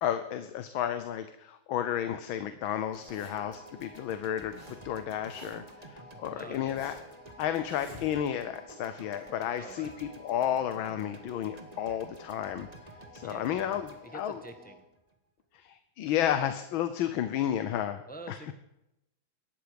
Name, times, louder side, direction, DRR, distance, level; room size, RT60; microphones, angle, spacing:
voice 1, 0.0-4.6 4.8-7.0 7.4-12.7 13.1-14.4 15.5-18.0 18.3-18.4, left 10 dB, 75° left, 10 dB, 1.6 m, -32 dB
Zipper (clothing), 2.9-3.6 4.2-4.8 5.0-5.8 6.3-7.1 7.6-8.4, left 1 dB, 20° left, 7.4 m, -51 dB
sound 1, 2.9-15.1, right 2 dB, 20° right, 1.5 m, -52 dB
sound 2, 3.0-14.8, left 1 dB, 40° left, 5.1 m, -53 dB
voice 2, 6.4-6.9 9.5-10.0 13.2-14.8 18.1-18.5, right 2 dB, 5° left, 6 dB, 1.0 m, -47 dB
18.0 x 13.0 x 5.2 m, 0.88 s
omnidirectional pair, 2.3 m